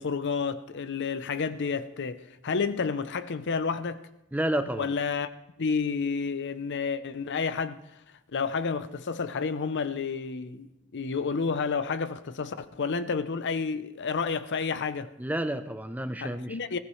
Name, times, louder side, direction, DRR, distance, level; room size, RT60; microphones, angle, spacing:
voice 1, 0.0-4.0 4.8-5.3 5.6-7.8 8.3-15.1 16.2-16.8, left 5 dB, 55° left, 0.6 m, -30 dB
voice 2, 4.3-4.9 15.2-16.6, right 1 dB, 5° right, 0.5 m, -30 dB
20.0 x 15.0 x 3.2 m
head